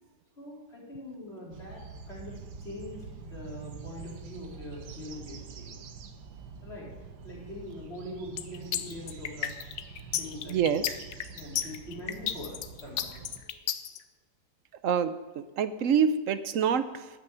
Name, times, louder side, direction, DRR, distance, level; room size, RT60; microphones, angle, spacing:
voice 1, 0.3-5.7 6.6-6.9 7.2-9.6 10.1-10.8 11.3-13.5, left 1 dB, 35° left, -5 dB, 4.6 m, -43 dB
sound 1, 1.5-13.4, right 6 dB, 75° right, 1.5 m, -46 dB
sound 2, 8.4-14.0, left 10 dB, 70° left, 1.2 m, -32 dB
voice 2, 10.5-10.9 14.8-17.1, right 7 dB, 60° right, 12 dB, 0.9 m, -27 dB
13.0 x 6.2 x 9.6 m, 1.2 s
omnidirectional pair, 1.8 m